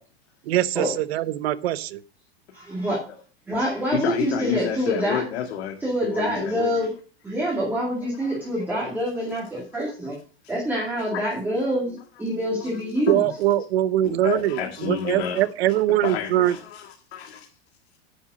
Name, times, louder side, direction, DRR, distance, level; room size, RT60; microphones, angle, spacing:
voice 1, 0.5-2.0 13.1-16.6, right 13 dB, 75° right, 15 dB, 0.8 m, -22 dB
voice 2, 2.5-3.0 3.5-5.2 5.8-6.9 7.2-10.1 10.5-13.2, equal, 5° right, -6 dB, 2.3 m, -26 dB
voice 3, 3.9-6.7 8.2-8.4 9.7-9.9 10.4-10.5 11.1-11.2 13.1-13.2 14.0-15.4 16.0-17.5, left 9 dB, 80° left, 2 dB, 1.9 m, -30 dB
9.9 x 5.7 x 6.3 m, 0.39 s
supercardioid pair, 175°, 32 cm